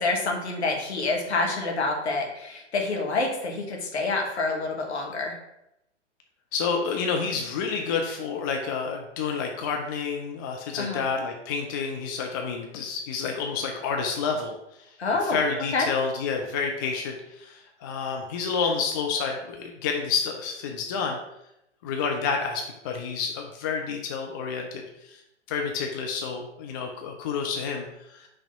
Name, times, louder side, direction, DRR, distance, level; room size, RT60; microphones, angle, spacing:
voice 1, 0.0-5.4 10.8-11.0 15.0-15.4 15.7-15.9, left 3 dB, 60° left, 1 dB, 1.5 m, -27 dB
voice 2, 6.5-14.5 15.2-21.2 21.8-25.2 25.5-28.3, left 5 dB, 20° left, 2 dB, 0.4 m, -29 dB
5.5 x 3.4 x 5.7 m, 0.84 s
figure-of-eight pair, 110°, 37 cm